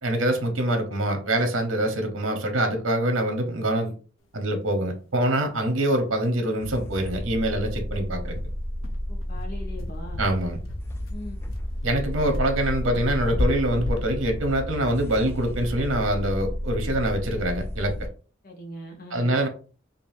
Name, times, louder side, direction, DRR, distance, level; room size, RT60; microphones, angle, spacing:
voice 1, 0.0-3.9 4.3-8.3 10.2-10.6 11.8-17.9 19.1-19.5, right 1 dB, 80° right, 1.1 m, -25 dB
sound 1, 5.5-5.6 5.9-6.0 6.3-6.5 6.8-6.9 7.4-15.8, left 1 dB, 80° left, 0.6 m, -34 dB
sound 2, 6.6-18.1, left 1 dB, 15° left, 0.3 m, -32 dB
voice 2, 9.1-10.3 11.1-11.4 18.4-19.4, left 1 dB, 50° left, 0.9 m, -40 dB
5.3 x 2.5 x 2.6 m
head